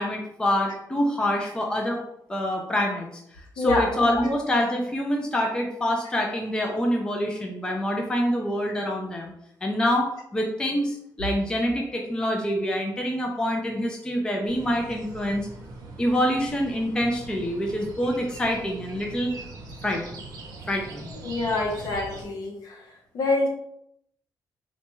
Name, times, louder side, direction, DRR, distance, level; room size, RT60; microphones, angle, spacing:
voice 1, 0.0-2.0 2.3-3.1 3.6-9.3 9.6-15.5 16.0-19.3 19.8-20.0 20.7-21.1, equal, 10° left, 1 dB, 0.4 m, -26 dB
voice 2, 3.6-3.9 21.2-22.8 23.1-23.5, left 2 dB, 60° left, 1 dB, 0.8 m, -25 dB
sound 1, 14.4-22.3, right 2 dB, 60° right, 0.7 m, -42 dB
4.0 x 2.2 x 3.0 m, 0.76 s
cardioid pair, 160°, 7 cm